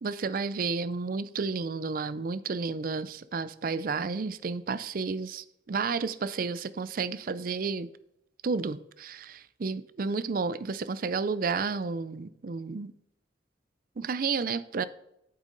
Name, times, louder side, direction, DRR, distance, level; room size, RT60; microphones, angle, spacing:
voice 1, 0.0-7.9 8.4-12.9 14.0-14.8, right 4 dB, 50° right, 0.4 m, -31 dB
8.9 x 8.2 x 3.9 m
head